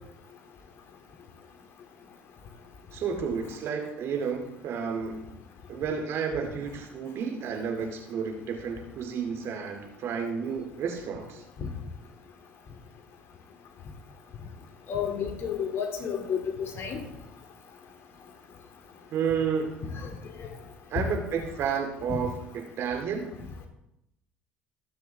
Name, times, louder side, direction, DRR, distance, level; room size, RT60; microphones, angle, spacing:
voice 1, 2.9-5.3 5.7-11.4 19.1-20.1 20.9-23.3, right 6 dB, 55° right, 3 dB, 2.4 m, -31 dB
voice 2, 14.9-17.0 19.8-20.1 22.1-22.2, left 7 dB, 50° left, 3 dB, 2.6 m, -31 dB
19.0 x 7.0 x 3.5 m, 0.84 s
hypercardioid pair, 65°, 5 cm